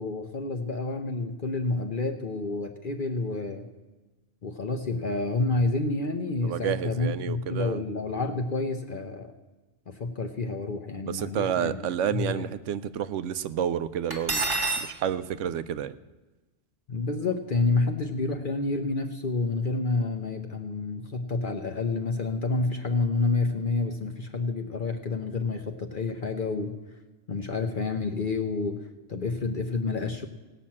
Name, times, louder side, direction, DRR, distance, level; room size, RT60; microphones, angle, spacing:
voice 1, 0.0-3.7 4.4-9.3 9.9-11.8 12.1-12.5 16.9-26.7 27.3-30.3, left 3 dB, 50° left, 4 dB, 0.9 m, -29 dB
voice 2, 6.4-7.8 11.1-16.0, right 9 dB, 85° right, 14 dB, 1.0 m, -30 dB
Cutlery silverware, 14.1-14.9, right 3 dB, 20° right, 1.1 m, -27 dB
17.5 x 6.0 x 8.5 m, 1.2 s
omnidirectional pair, 1.2 m